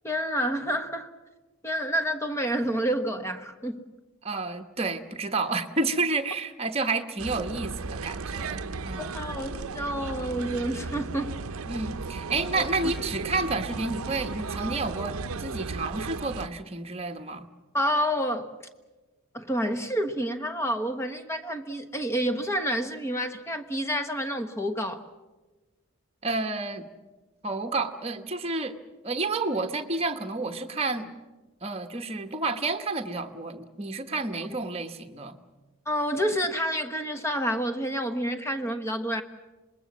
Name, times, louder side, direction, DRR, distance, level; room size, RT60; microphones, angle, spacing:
voice 1, 0.0-1.1 1.6-3.8 9.0-11.3 12.5-12.7 17.7-18.5 19.3-25.0 35.9-39.2, equal, 10° left, 8 dB, 1.1 m, -29 dB
voice 2, 4.2-9.1 11.7-17.5 26.2-26.9 27.4-28.8 29.0-31.1 31.6-35.4, right 3 dB, 25° right, 7 dB, 1.1 m, -30 dB
sound 1, 7.2-16.5, right 4 dB, 70° right, 0.7 m, -35 dB
25.5 x 21.0 x 7.3 m, 1.2 s
head